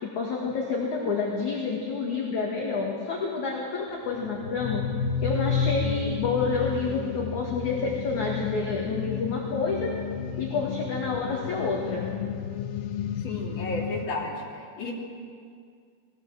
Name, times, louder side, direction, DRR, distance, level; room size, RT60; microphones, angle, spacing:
voice 1, 0.0-4.8 5.2-9.9 10.4-12.0, left 4 dB, 50° left, -2 dB, 2.8 m, -29 dB
sound 1, 4.2-14.1, left 7 dB, 85° left, 2.1 m, -31 dB
voice 2, 13.2-14.3 14.8-14.9, left 2 dB, 30° left, -3 dB, 3.3 m, -32 dB
21.0 x 16.5 x 7.6 m, 2.2 s
omnidirectional pair, 5.4 m